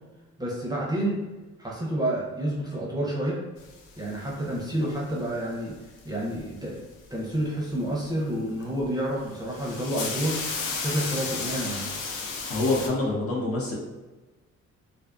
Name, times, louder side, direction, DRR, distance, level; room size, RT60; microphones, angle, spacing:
voice 1, 0.4-1.2 1.6-3.4 4.0-5.8 6.0-6.8 7.1-10.4 10.8-11.8, right 1 dB, 15° right, -4 dB, 0.5 m, -29 dB
sound 1, 3.6-4.7 6.0-6.5 8.6-8.9 9.2-12.9, left 4 dB, 85° left, 0.5 m, -33 dB
voice 2, 12.5-13.8, left 2 dB, 50° left, -3 dB, 0.7 m, -26 dB
2.5 x 2.3 x 2.3 m, 1.2 s
cardioid pair, 90°, 30 cm